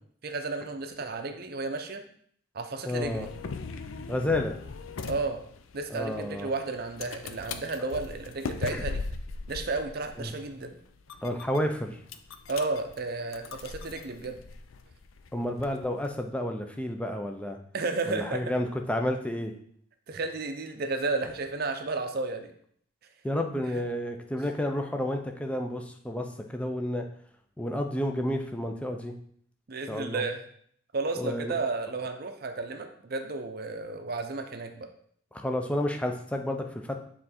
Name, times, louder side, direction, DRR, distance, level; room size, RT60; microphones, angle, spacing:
voice 1, 0.2-2.0 2.5-3.3 5.1-5.4 5.7-9.0 9.5-10.8 12.5-14.4 17.7-18.4 20.1-22.5 23.7-23.8 29.7-30.4 30.9-34.9, right 3 dB, 50° right, 6 dB, 0.6 m, -32 dB
voice 2, 2.8-3.3 4.1-4.6 5.9-6.5 8.7-8.8 10.2-10.3 11.2-12.0 15.3-17.6 18.1-19.5 23.2-27.0 27.6-29.2 29.9-30.2 31.2-31.5 35.3-37.0, left 1 dB, 5° left, 4 dB, 0.5 m, -30 dB
sound 1, 3.0-16.2, left 4 dB, 85° left, 0.5 m, -40 dB
6.9 x 3.7 x 4.3 m, 0.62 s
head